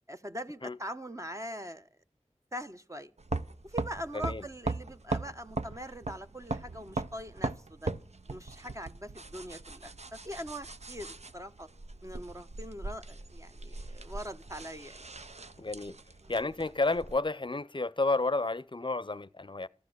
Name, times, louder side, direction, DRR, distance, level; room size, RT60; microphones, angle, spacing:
voice 1, 0.1-1.9 2.5-3.1 3.6-7.9 8.3-11.1 11.3-11.7 12.0-15.0 16.2-16.3, equal, 25° right, 1.1 m, -42 dB
sound 1, 3.2-17.2, right 3 dB, 70° right, 0.8 m, -39 dB
voice 2, 4.1-4.4 15.6-16.0 16.3-19.7, left 3 dB, 45° left, 0.6 m, -31 dB
14.5 x 12.5 x 6.3 m
wide cardioid pair, 45°, 12 cm